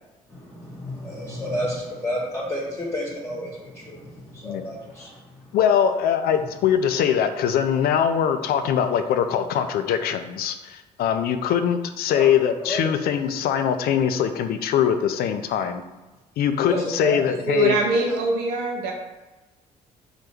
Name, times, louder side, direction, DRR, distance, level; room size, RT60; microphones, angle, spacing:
voice 1, 0.3-5.5 12.1-12.2 12.6-12.9 16.7-17.2, equal, 15° left, -6 dB, 1.2 m, -31 dB
voice 2, 5.5-15.8 16.4-17.8, left 8 dB, 55° left, 8 dB, 0.4 m, -22 dB
voice 3, 17.5-18.9, right 2 dB, 70° right, 1 dB, 0.6 m, -23 dB
3.8 x 2.2 x 3.4 m, 1.1 s
figure-of-eight pair, 50°, 19 cm